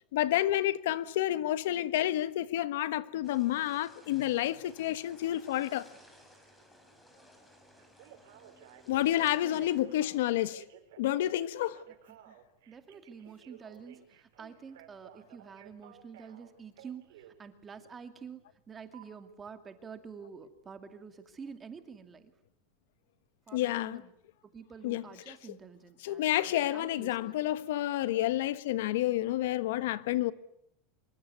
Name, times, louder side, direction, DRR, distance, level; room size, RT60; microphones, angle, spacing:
voice 1, 0.1-5.9 8.9-10.6 11.0-11.8 23.5-24.0 24.8-25.0 26.0-30.3, left 14 dB, 75° left, 1.3 m, -29 dB
sound 1, 3.2-9.8, equal, 5° left, 5.9 m, -59 dB
Telephone, 7.8-17.4 18.9-19.1, right 11 dB, 80° right, 4.9 m, -55 dB
voice 2, 9.4-9.9 12.2-12.4 12.7-22.3 23.5-24.1 24.5-27.4, right 6 dB, 15° right, 2.4 m, -48 dB
26.0 x 23.5 x 9.6 m
supercardioid pair, 160°, 0 cm